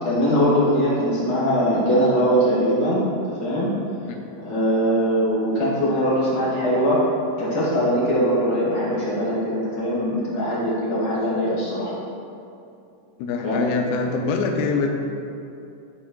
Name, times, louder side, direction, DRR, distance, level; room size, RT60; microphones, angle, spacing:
voice 1, 0.0-3.0 3.4-3.7 4.3-7.0 7.4-11.9 13.4-13.6, equal, 50° left, -8 dB, 1.6 m, -21 dB
voice 2, 13.2-14.9, left 4 dB, 85° left, 2 dB, 2.4 m, -24 dB
11.0 x 4.1 x 2.3 m, 2.6 s
omnidirectional pair, 4.4 m